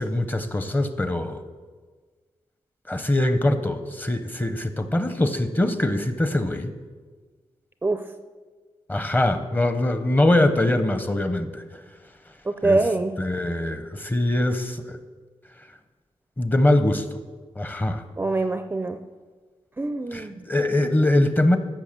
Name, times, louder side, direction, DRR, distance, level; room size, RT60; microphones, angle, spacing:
voice 1, 0.0-1.4 2.9-6.7 8.9-11.6 12.6-12.8 13.2-15.0 16.4-17.1 17.6-18.0 20.1-21.6, left 1 dB, 15° left, 9 dB, 0.7 m, -22 dB
voice 2, 12.5-13.2 18.2-19.0 19.8-20.5, right 2 dB, 20° right, 9 dB, 0.4 m, -24 dB
13.5 x 6.2 x 7.4 m, 1.4 s
wide cardioid pair, 165°, 11 cm